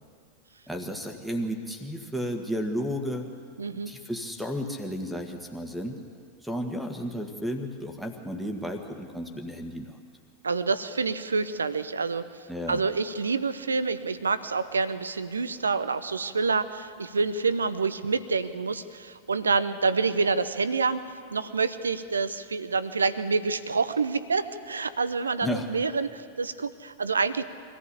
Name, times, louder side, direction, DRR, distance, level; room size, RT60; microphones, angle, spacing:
voice 1, 0.7-3.3 3.9-6.0 6.4-10.0 12.5-12.8 25.4-25.7, equal, 5° right, 4 dB, 1.8 m, -33 dB
voice 2, 3.6-4.0 10.4-27.4, right 4 dB, 75° right, 14 dB, 0.9 m, -27 dB
24.0 x 15.0 x 8.5 m, 2.2 s
figure-of-eight pair, 90°, 0 cm